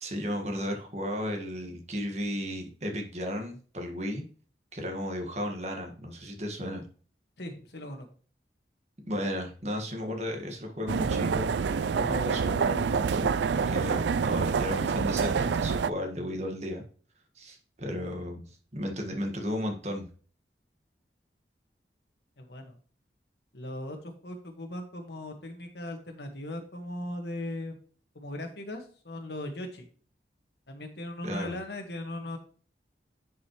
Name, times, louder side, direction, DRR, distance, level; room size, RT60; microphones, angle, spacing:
voice 1, 0.0-4.2 4.7-6.8 9.1-16.8 17.3-18.5 18.7-20.1 31.2-31.5, equal, 40° right, 3 dB, 1.6 m, -34 dB
voice 2, 7.4-8.1 22.4-22.7 23.5-27.8 28.1-29.9 30.7-32.4, left 1 dB, 75° left, 5 dB, 1.6 m, -38 dB
sound 1, 10.9-15.9, right 5 dB, 85° right, 0.4 m, -27 dB
9.9 x 5.5 x 3.1 m, 0.42 s
head